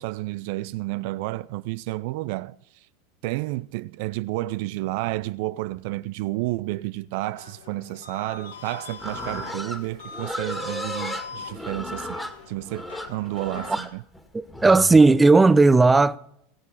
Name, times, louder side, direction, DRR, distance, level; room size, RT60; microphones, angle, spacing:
voice 1, 0.0-2.9 3.2-12.2 12.5-14.0, right 19 dB, 65° right, 0.4 m, -31 dB
sound 1, 7.1-13.8, left 5 dB, 85° left, 1.5 m, -42 dB
Livestock farm animals working animals, 9.0-15.0, equal, 5° left, 2.0 m, -35 dB
voice 2, 14.3-16.2, right 3 dB, 15° right, 0.7 m, -15 dB
20.0 x 7.4 x 4.9 m
hypercardioid pair, 100°, 0 cm